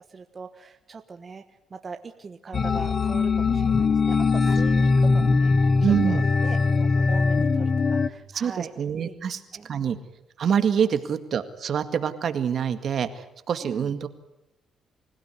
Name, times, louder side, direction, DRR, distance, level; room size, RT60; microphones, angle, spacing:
voice 1, 0.1-1.4 1.7-5.7 6.0-8.7 9.0-9.2 9.5-9.7 13.5-13.9, right 5 dB, 35° right, 6 dB, 1.4 m, -41 dB
sound 1, 2.5-8.1, left 4 dB, 40° left, 1.1 m, -21 dB
voice 2, 5.8-6.2 8.3-10.0 10.4-14.1, right 7 dB, 60° right, 10 dB, 2.0 m, -26 dB
26.0 x 16.5 x 9.9 m, 0.88 s
cardioid pair, 90°, 0 cm